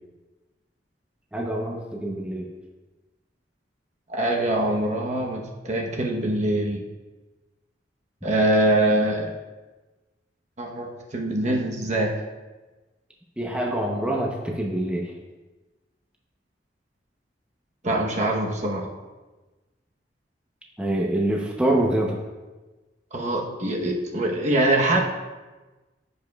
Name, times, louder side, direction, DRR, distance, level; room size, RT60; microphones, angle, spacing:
voice 1, 1.3-2.5 13.4-15.1 20.8-22.2, right 1 dB, 5° right, -2 dB, 0.7 m, -25 dB
voice 2, 4.1-6.8 8.2-9.3 10.6-12.1 17.8-18.9 23.1-25.0, right 1 dB, 40° right, 0 dB, 0.9 m, -23 dB
14.0 x 5.2 x 2.3 m, 1.2 s
head